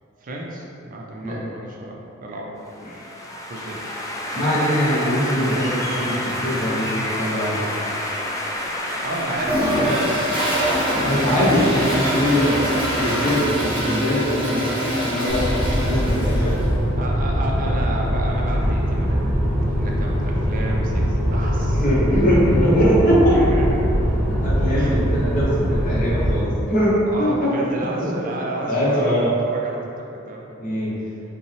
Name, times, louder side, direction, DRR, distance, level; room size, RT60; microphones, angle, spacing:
voice 1, 0.2-2.6 3.5-3.8 9.0-11.6 17.0-21.9 23.3-23.8 24.7-25.0 27.0-30.5 31.0-31.2, right 1 dB, 45° right, -2 dB, 0.5 m, -32 dB
sound 1, 2.7-13.4, left 1 dB, 15° left, 0.4 m, -29 dB
voice 2, 4.3-6.1 6.4-7.6 11.0-12.6 13.0-15.5 15.8-16.5 21.8-23.4 24.4-27.5 28.7-29.3 30.6-30.9, equal, 40° left, -7 dB, 1.1 m, -21 dB
Toilet flush, 9.4-16.7, equal, 30° right, 0.9 m, -24 dB
sound 2, 15.3-26.4, equal, 5° right, 1.2 m, -22 dB
5.2 x 2.2 x 3.3 m, 2.7 s
head